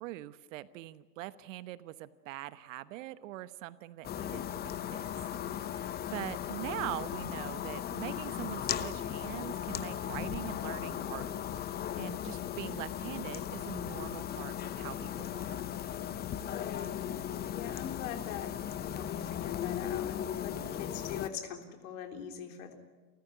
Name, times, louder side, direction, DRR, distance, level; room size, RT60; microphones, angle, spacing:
voice 1, 0.0-5.0 5.5-15.6 20.5-20.8, right 16 dB, 55° right, 14 dB, 1.2 m, -43 dB
sound 1, 4.0-21.3, left 10 dB, 20° left, 0.9 m, -37 dB
voice 2, 6.1-6.7 16.4-17.2 17.4-18.5 18.8-22.7, left 8 dB, 60° left, 5 dB, 3.7 m, -43 dB
29.5 x 14.5 x 10.0 m, 1.4 s
hypercardioid pair, 120°, 46 cm